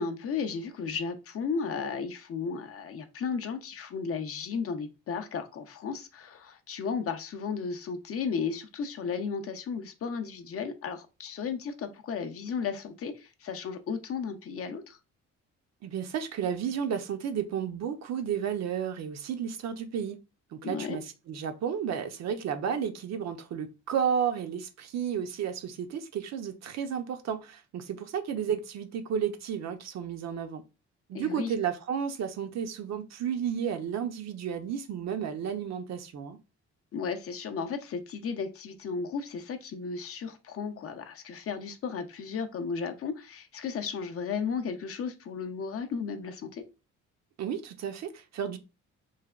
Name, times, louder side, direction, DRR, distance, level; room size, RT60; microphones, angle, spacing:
voice 1, 0.0-15.0 20.6-21.0 31.1-31.5 36.9-46.6, left 5 dB, 50° left, 0.5 m, -34 dB
voice 2, 15.8-20.2 20.5-30.6 31.1-36.4 47.4-48.6, right 8 dB, 60° right, 0.6 m, -32 dB
3.2 x 2.1 x 2.4 m
cardioid pair, 90°, 30 cm